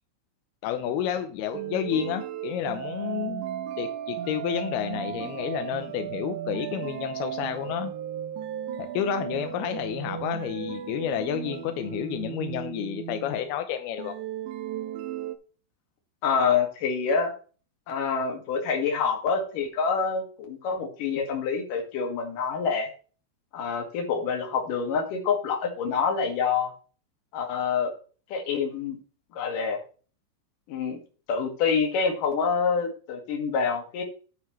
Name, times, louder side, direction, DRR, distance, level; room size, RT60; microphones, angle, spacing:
voice 1, 0.6-3.5 3.8-7.9 8.8-14.1, left 10 dB, 80° left, 8 dB, 2.3 m, -30 dB
sound 1, 1.5-13.5 14.0-15.4, right 10 dB, 80° right, 3.0 m, -35 dB
voice 2, 16.2-17.3 17.9-22.9 23.5-26.7 27.3-27.9 28.3-29.0 29.3-29.8 30.7-31.0 31.3-34.0, left 5 dB, 55° left, 2 dB, 3.0 m, -26 dB
9.5 x 9.3 x 3.1 m, 0.38 s
omnidirectional pair, 5.4 m